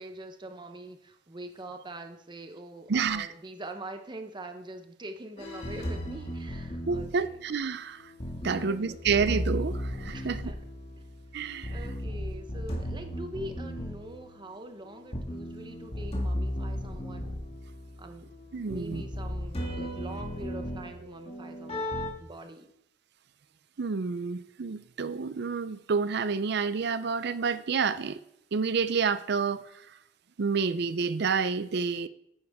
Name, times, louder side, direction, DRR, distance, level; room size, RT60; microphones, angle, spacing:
voice 1, 0.0-7.4 8.5-9.1 10.1-10.6 11.7-17.3 18.0-18.3 18.7-21.9 22.2-22.7, right 1 dB, 25° right, 6 dB, 0.9 m, -43 dB
voice 2, 2.9-3.3 6.9-8.0 8.4-10.4 11.3-11.7 18.5-19.0 23.8-28.2 28.5-29.6 30.4-32.1, right 5 dB, 60° right, 14 dB, 0.5 m, -29 dB
sound 1, 5.4-22.1, equal, 35° left, 2.0 m, -36 dB
9.7 x 9.6 x 3.6 m, 0.76 s
head